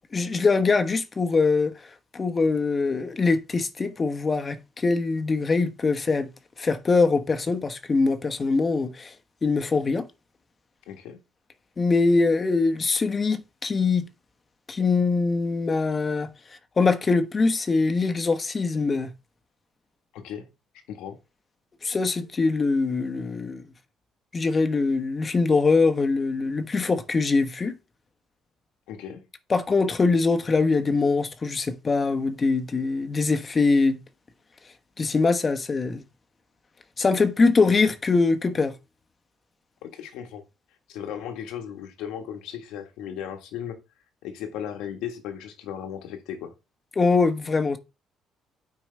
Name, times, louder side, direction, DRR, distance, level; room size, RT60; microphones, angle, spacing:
voice 1, 0.1-1.7 2.1-6.3 6.6-9.1 9.4-10.1 11.8-14.0 14.7-16.3 16.8-19.1 21.8-23.6 24.3-27.8 29.5-34.0 35.0-36.0 37.0-38.7 47.0-47.8, left 4 dB, 35° left, 1.1 m, -23 dB
voice 2, 10.9-11.2 20.1-20.5 20.9-21.2 28.9-29.2 39.8-40.4 40.9-43.8 44.2-46.5, left 9 dB, 85° left, 1.4 m, -36 dB
9.3 x 4.8 x 3.3 m
supercardioid pair, 80°, 0 cm